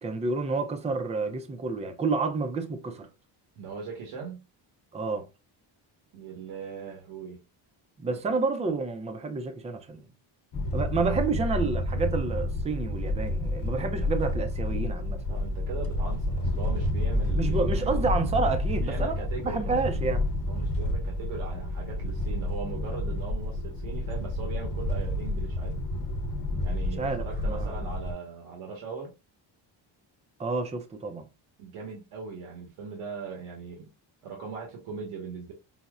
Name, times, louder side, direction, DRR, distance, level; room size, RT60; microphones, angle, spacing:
voice 1, 0.0-3.1 4.9-5.3 8.0-10.0 10.7-15.2 17.3-20.2 27.0-27.7 30.4-31.3, right 4 dB, 15° right, 0.3 m, -29 dB
voice 2, 3.6-4.5 6.1-7.4 8.3-8.4 15.3-18.1 18.7-19.8 20.5-25.8 26.6-29.1 31.6-33.9 34.2-35.5, right 5 dB, 85° right, 1.2 m, -39 dB
sound 1, 10.5-28.1, left 1 dB, 45° left, 0.9 m, -29 dB
5.4 x 2.0 x 2.3 m
cardioid pair, 135°, 49 cm